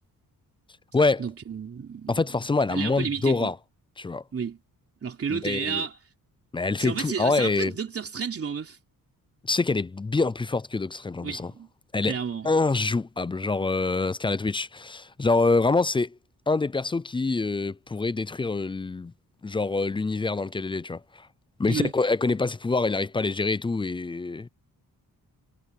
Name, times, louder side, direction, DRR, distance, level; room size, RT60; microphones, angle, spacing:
voice 1, 1.2-2.2 2.7-3.5 4.3-4.6 5.0-6.0 6.8-8.8 11.2-11.7 12.1-12.5 21.6-21.9, right 6 dB, 40° right, 3.4 m, -31 dB
voice 2, 2.1-3.6 4.0-4.2 5.3-5.9 6.5-7.7 9.4-11.5 11.9-12.1 12.4-16.2 16.5-19.1 19.4-21.3 21.6-24.5, left 3 dB, 15° left, 0.3 m, -25 dB
wide cardioid pair, 170°, 37 cm